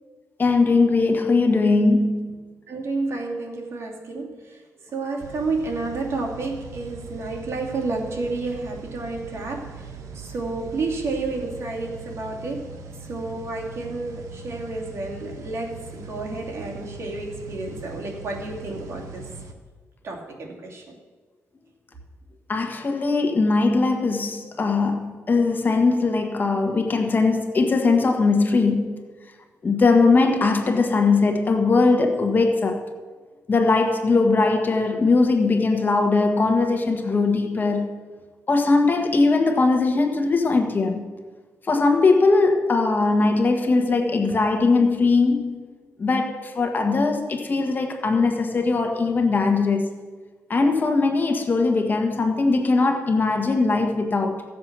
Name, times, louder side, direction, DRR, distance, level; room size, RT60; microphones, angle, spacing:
voice 1, 0.4-2.3 22.5-29.0 29.6-32.8 33.5-38.0 38.5-41.1 41.6-45.6 46.0-49.9 50.5-54.4, left 3 dB, 35° left, 1.4 m, -20 dB
voice 2, 2.7-12.7 13.1-19.3 20.0-21.0, right 3 dB, 55° right, 2.6 m, -30 dB
sound 1, 5.2-19.5, right 4 dB, 80° right, 1.2 m, -40 dB
15.5 x 7.7 x 6.1 m
cardioid pair, 100°, 5 cm